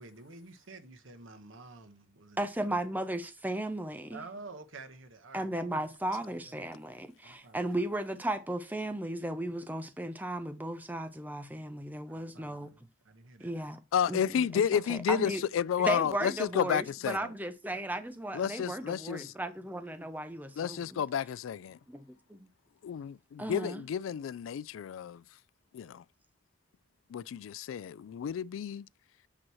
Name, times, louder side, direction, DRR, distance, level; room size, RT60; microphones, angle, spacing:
voice 1, 0.0-2.4 2.7-2.9 4.1-5.5 5.8-5.9 6.2-6.6 7.2-7.8 12.1-13.7, right 3 dB, 85° right, 1.1 m, -50 dB
voice 2, 2.4-4.2 5.3-12.7 13.4-13.8 14.1-15.4 15.8-21.0 21.9-22.5 23.4-23.8, right 1 dB, 10° right, 0.6 m, -35 dB
voice 3, 13.9-17.3 18.3-19.3 20.6-21.8 22.8-25.2 25.7-26.0 27.1-28.9, left 8 dB, 85° left, 0.3 m, -31 dB
8.8 x 3.1 x 6.2 m
head